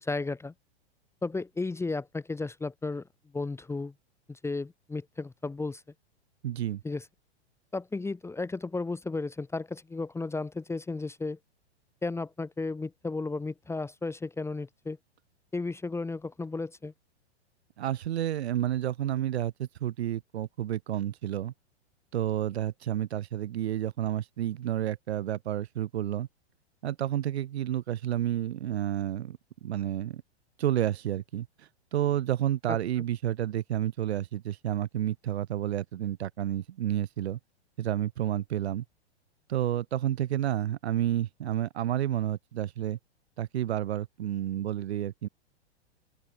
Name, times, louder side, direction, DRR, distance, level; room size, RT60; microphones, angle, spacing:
voice 1, 0.0-0.5 1.2-3.1 3.3-3.9 4.3-5.8 6.8-7.0 7.7-11.4 12.0-15.0 15.5-16.9 32.7-32.8, left 3 dB, 10° left, 1.6 m, -34 dB
voice 2, 6.4-6.8 17.8-21.5 22.1-26.3 26.8-30.2 30.6-37.4 37.8-38.8 39.5-43.0 43.4-45.3, right 12 dB, 70° right, 4.0 m, -30 dB
open air
hypercardioid pair, 115°, 34 cm